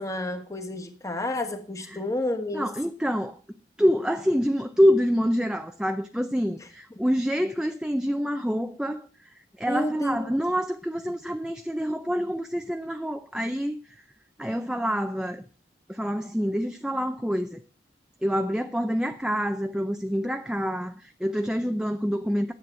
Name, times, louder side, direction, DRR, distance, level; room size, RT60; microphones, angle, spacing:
voice 1, 0.0-2.7 9.7-10.4, left 1 dB, 20° left, 1.4 m, -30 dB
voice 2, 2.5-3.4 3.8-9.1 9.6-13.8 14.4-15.4 15.9-17.6 18.2-22.5, equal, 5° right, 0.5 m, -26 dB
10.5 x 7.9 x 6.1 m
head